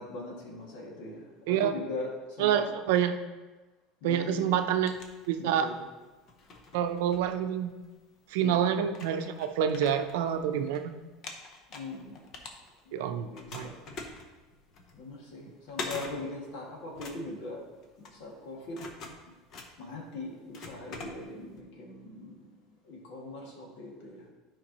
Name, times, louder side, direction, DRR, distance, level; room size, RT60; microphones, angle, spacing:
voice 1, 0.0-2.1 2.4-2.7 4.0-4.5 5.4-5.8 8.4-8.7 11.7-12.2 13.0-13.7 14.9-17.6 18.0-18.8 19.8-22.4 22.9-24.2, left 2 dB, 65° left, -2 dB, 2.1 m, -40 dB
voice 2, 1.5-1.8 2.4-3.2 4.0-5.0 5.3-5.7 6.7-7.7 8.3-10.9 12.9-13.3 13.5-13.7, right 9 dB, 80° right, 7 dB, 0.6 m, -27 dB
sound 1, 4.5-5.8 6.2-7.9 8.5-8.6 8.9-10.8 11.1-13.0 13.3-21.6, left 3 dB, 35° left, 0.8 m, -44 dB
11.5 x 5.1 x 3.0 m, 1.2 s
cardioid pair, 165°, 0 cm